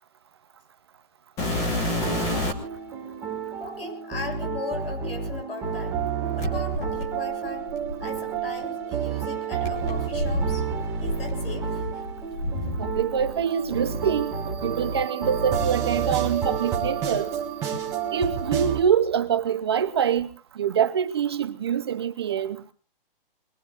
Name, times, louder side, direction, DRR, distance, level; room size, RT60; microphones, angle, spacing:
sound 1, 1.4-2.8 3.6-3.7 6.4-8.5 9.6-13.4 13.6-14.7 15.5-15.6 16.2-16.3 17.0-18.1 18.4-18.9 20.2-20.3, left 1 dB, 10° left, 1.2 m, -30 dB
sound 2, 1.8-18.8, right 7 dB, 10° right, 1.5 m, -30 dB
voice 1, 3.6-5.9 6.3-7.7 8.0-10.7 11.0-11.8, left 3 dB, 80° left, 6.8 m, -38 dB
voice 2, 12.8-17.3 18.1-22.6, right 8 dB, 25° right, 0.7 m, -25 dB
24.5 x 21.0 x 2.5 m
hypercardioid pair, 170°, 29 cm